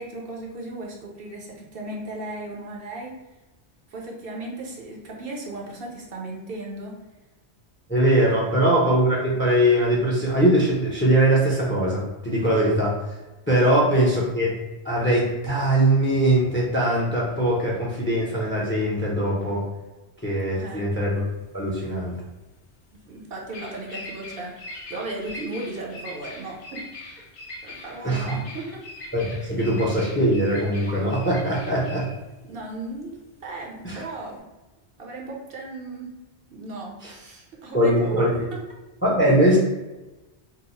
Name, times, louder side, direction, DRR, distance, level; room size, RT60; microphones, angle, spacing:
voice 1, 0.0-3.2 3.9-6.9 8.4-8.6 13.6-13.7 20.5-20.9 23.1-24.6 24.9-26.8 27.6-28.8 32.4-33.1 33.4-34.4 35.0-36.1 36.5-38.2 38.5-38.6, right 2 dB, 60° right, -1 dB, 0.8 m, -36 dB
voice 2, 7.9-13.0 13.5-14.5 14.8-19.6 20.2-21.2 21.5-22.2 28.0-28.4 29.1-32.1 33.8-34.0 37.0-37.1 37.7-38.3 39.0-39.6, right 1 dB, 15° left, -4 dB, 0.4 m, -21 dB
Bird vocalization bird call bird song, 21.1-34.4, left 2 dB, 50° left, 0.7 m, -42 dB
2.8 x 2.0 x 4.0 m, 1.1 s
omnidirectional pair, 1.1 m